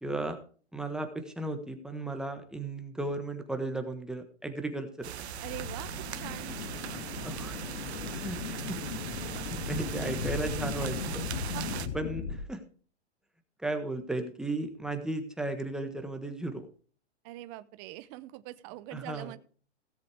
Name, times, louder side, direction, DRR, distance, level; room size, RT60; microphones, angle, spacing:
voice 1, 0.0-0.4 0.7-5.1 7.2-7.6 8.2-8.8 9.3-11.3 11.9-12.6 13.6-16.6 18.9-19.3, right 2 dB, ahead, 6 dB, 1.4 m, -35 dB
sound 1, 5.0-11.9, right 10 dB, 65° right, 1.2 m, -39 dB
sound 2, 5.2-12.4, left 6 dB, 65° left, 1.9 m, -37 dB
voice 2, 5.4-6.6 11.5-11.9 17.2-19.4, right 17 dB, 30° right, 13 dB, 0.6 m, -43 dB
17.0 x 7.7 x 3.5 m, 0.42 s
hypercardioid pair, 140°, 35 cm